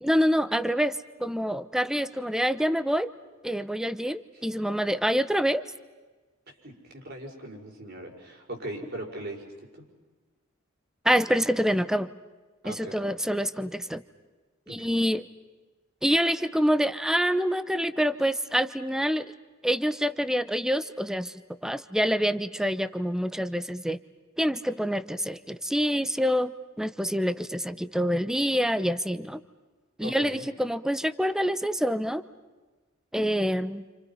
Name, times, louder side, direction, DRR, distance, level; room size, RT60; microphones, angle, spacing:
voice 1, 0.0-3.1 3.4-5.6 11.0-12.1 12.6-14.0 14.7-15.3 16.0-19.3 19.6-24.0 24.4-26.5 26.8-29.4 30.0-32.2 33.1-33.8, equal, 5° right, 13 dB, 0.8 m, -26 dB
voice 2, 6.5-9.9 12.6-13.1 14.7-14.9 30.0-30.4, right 1 dB, 50° right, 1 dB, 5.7 m, -40 dB
30.0 x 28.0 x 5.7 m, 1.3 s
head